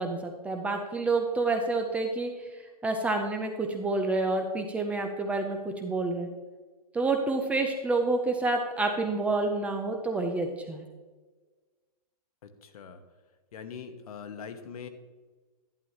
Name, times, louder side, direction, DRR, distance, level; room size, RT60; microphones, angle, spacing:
voice 1, 0.0-2.3 2.8-6.3 6.9-10.8, right 3 dB, 5° right, 4 dB, 0.4 m, -28 dB
voice 2, 12.4-13.0 13.5-14.9, left 6 dB, 65° left, 7 dB, 1.2 m, -42 dB
11.0 x 10.5 x 2.8 m, 1.3 s
hypercardioid pair, 155°, 20 cm